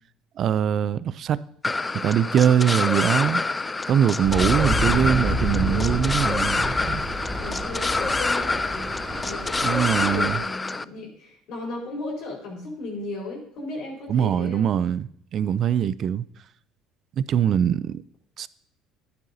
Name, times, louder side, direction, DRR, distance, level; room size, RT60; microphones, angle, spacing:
voice 1, 0.4-3.4 3.9-7.0 9.6-10.4 14.1-16.2 17.2-18.0 18.4-18.5, right 9 dB, 55° right, 0.4 m, -23 dB
sound 1, 1.6-10.8, left 3 dB, 20° left, 0.3 m, -26 dB
sound 2, 4.2-10.4, equal, 20° right, 1.9 m, -29 dB
voice 2, 5.6-6.0 7.4-14.7, left 2 dB, 65° left, 4.4 m, -36 dB
11.0 x 9.4 x 2.7 m
hypercardioid pair, 70°, 0 cm